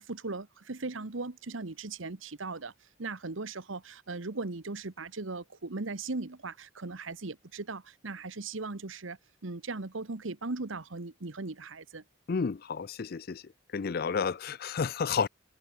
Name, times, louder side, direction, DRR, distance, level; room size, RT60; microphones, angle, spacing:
voice 1, 0.0-2.7 3.0-12.0, right 3 dB, 80° right, 1.3 m, -38 dB
voice 2, 12.3-13.4 13.7-15.3, left 5 dB, 50° left, 0.4 m, -31 dB
head